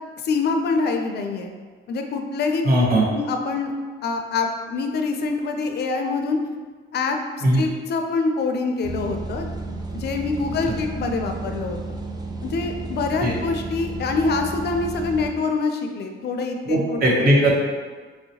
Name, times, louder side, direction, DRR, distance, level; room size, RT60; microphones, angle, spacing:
voice 1, 0.2-1.5 1.9-2.6 3.1-3.7 4.0-6.4 6.9-7.2 7.5-9.5 9.9-12.0 12.4-17.0, left 4 dB, 60° left, 4 dB, 0.4 m, -25 dB
voice 2, 2.6-3.0 7.4-7.6 13.2-13.3 16.7-17.5, right 1 dB, 50° right, -3 dB, 0.9 m, -18 dB
sound 1, 8.8-15.3, right 3 dB, 20° right, 0.3 m, -32 dB
3.0 x 2.8 x 2.8 m, 1.5 s
cardioid pair, 90°, 20 cm